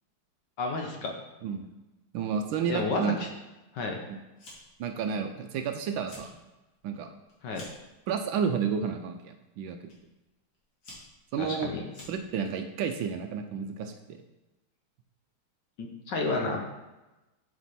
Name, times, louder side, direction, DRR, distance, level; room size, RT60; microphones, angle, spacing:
voice 1, 0.6-1.1 2.7-3.3 3.7-4.0 7.4-7.6 11.4-11.8 15.8-16.6, left 3 dB, 65° left, 2 dB, 1.3 m, -31 dB
voice 2, 2.1-3.2 4.1-4.2 4.8-6.3 6.8-7.1 8.1-9.8 11.3-11.7 12.1-14.2, right 7 dB, 75° right, 6 dB, 1.2 m, -31 dB
Fire, 4.4-4.9 5.2-5.7 6.0-6.3 6.7-7.9 8.7-9.0 9.9-10.0 10.5-12.5, left 1 dB, 45° left, 2.4 m, -49 dB
7.6 x 5.2 x 4.2 m, 1.1 s
omnidirectional pair, 2.4 m